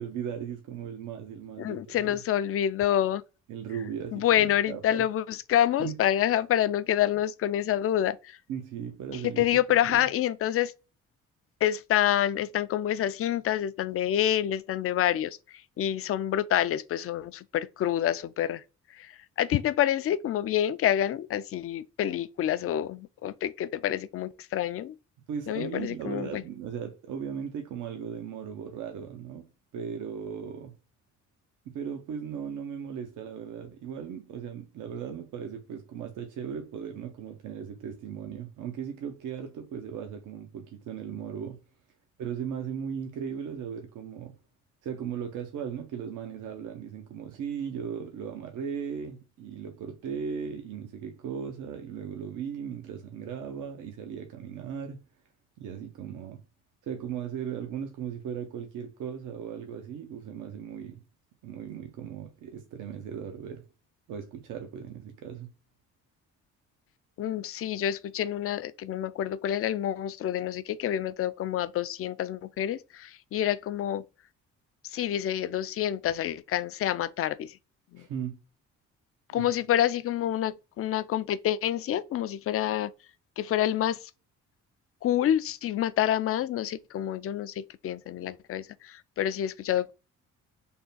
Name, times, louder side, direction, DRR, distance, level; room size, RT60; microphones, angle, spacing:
voice 1, 0.0-2.2 3.5-5.1 5.8-6.0 8.5-10.1 25.3-30.8 31.7-41.6 42.2-44.4 44.8-55.0 55.6-56.4 56.8-61.0 61.4-63.6 64.1-65.5 78.0-78.4 79.3-79.5, right 7 dB, 80° right, 0.7 m, -37 dB
voice 2, 1.6-3.2 4.1-8.4 9.1-10.7 11.6-18.6 18.9-19.1 19.4-24.9 25.5-26.4 67.2-74.0 74.8-77.6 77.9-78.1 79.3-82.9 83.4-84.1 85.0-89.9, left 11 dB, 50° left, 0.4 m, -27 dB
3.6 x 2.2 x 3.9 m
cardioid pair, 90°, 30 cm